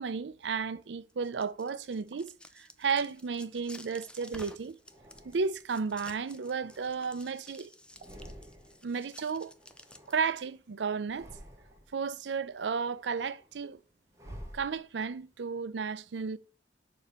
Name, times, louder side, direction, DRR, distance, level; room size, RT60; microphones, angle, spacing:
voice 1, 0.0-4.8 5.2-7.7 8.8-9.5 10.1-11.3 11.9-13.8 14.5-16.4, right 5 dB, 85° right, 0.5 m, -33 dB
sound 1, 1.1-10.5, left 1 dB, 5° left, 0.6 m, -53 dB
sound 2, 1.8-2.3 3.2-3.3 4.1-4.3 5.9-6.0 8.0-8.2 9.2-9.4 10.3-10.5 11.7-11.8 12.4-12.6 12.8-13.0, right 4 dB, 50° right, 0.8 m, -55 dB
sound 3, 2.9-4.2 4.8-5.8 6.2-7.5 7.8-8.9 9.2-10.6 11.0-12.0 12.5-15.2, equal, 20° right, 1.6 m, -52 dB
6.8 x 4.2 x 5.4 m
head